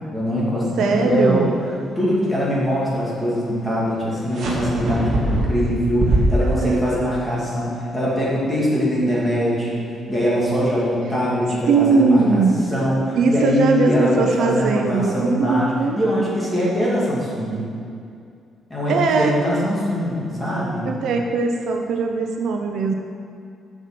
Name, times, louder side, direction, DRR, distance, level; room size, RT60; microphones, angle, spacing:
voice 1, 0.1-1.4 2.0-12.4 12.7-17.7 18.7-20.9, equal, 10° left, -7 dB, 2.4 m, -22 dB
voice 2, 0.8-1.5 6.4-6.8 11.7-12.6 13.2-16.0 18.9-19.4 20.8-22.9, right 4 dB, 70° right, 3 dB, 0.8 m, -20 dB
sound 1, 4.3-6.7, right 1 dB, 45° right, 1.8 m, -21 dB
8.0 x 6.1 x 7.5 m, 2.4 s
cardioid pair, 175°, 0 cm